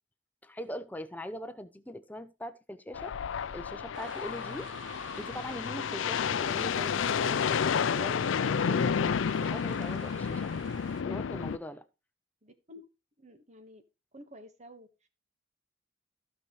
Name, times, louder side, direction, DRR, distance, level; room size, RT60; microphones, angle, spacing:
voice 1, 0.4-3.2 3.5-4.7 5.2-10.5 11.0-11.8, equal, 10° left, 0.7 m, -41 dB
sound 1, 2.9-11.6, left 7 dB, 90° left, 0.4 m, -30 dB
sound 2, 3.9-11.0, right 6 dB, 80° right, 0.7 m, -50 dB
voice 2, 12.4-12.9 13.2-13.8 14.1-15.1, left 1 dB, 40° right, 1.4 m, -51 dB
15.0 x 5.8 x 3.1 m
head